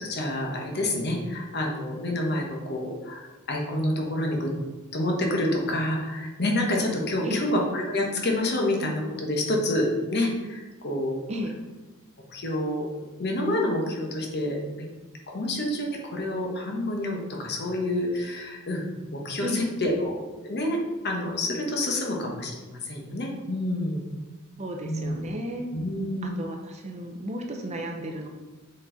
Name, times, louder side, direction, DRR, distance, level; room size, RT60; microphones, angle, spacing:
voice 1, 0.0-4.5 4.9-11.2 12.3-12.9 13.2-14.9 15.3-18.8 19.1-20.1 20.4-20.8 21.0-24.0 24.8-25.1 25.7-26.4, left 1 dB, 50° left, 0 dB, 1.1 m, -28 dB
voice 2, 19.4-19.7 24.6-25.7 26.2-28.3, equal, 30° right, 3 dB, 0.6 m, -33 dB
7.2 x 4.1 x 3.9 m, 1.2 s
head